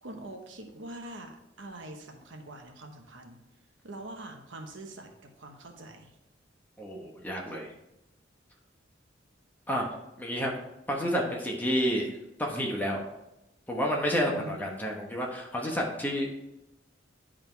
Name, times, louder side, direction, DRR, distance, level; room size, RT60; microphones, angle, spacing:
voice 1, 0.0-3.4 3.8-6.1 14.2-14.6, right 2 dB, 75° right, 4 dB, 1.0 m, -44 dB
voice 2, 6.8-7.7 9.7-9.9 10.2-10.5 10.9-12.1 12.4-13.0 13.7-16.4, equal, 10° left, -1 dB, 1.0 m, -30 dB
10.0 x 3.8 x 4.5 m, 0.92 s
head